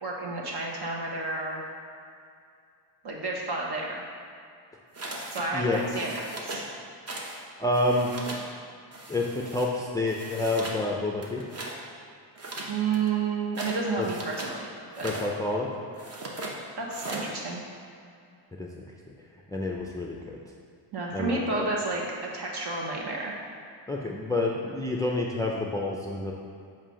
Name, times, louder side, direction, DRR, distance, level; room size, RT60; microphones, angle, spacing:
voice 1, 0.0-1.6 3.0-3.9 5.3-6.6 12.7-14.7 15.0-15.1 16.8-17.6 20.9-22.0 22.3-23.3, right 3 dB, 55° right, -2 dB, 1.3 m, -30 dB
sound 1, 4.9-5.5 5.7-6.7 7.1-7.4 7.7-8.5 8.9-9.7 10.1-10.8 11.2-11.8 12.3-14.6 14.9-15.3 15.9-16.6 16.9-17.3, right 2 dB, 30° right, 0.9 m, -38 dB
voice 2, 7.6-8.1 9.1-11.4 14.0-14.1 15.0-15.7 18.6-18.9 19.5-20.4 21.1-21.7 23.9-26.3, left 2 dB, 10° left, -2 dB, 0.4 m, -28 dB
7.3 x 2.8 x 5.0 m, 2.4 s
cardioid pair, 105°, 47 cm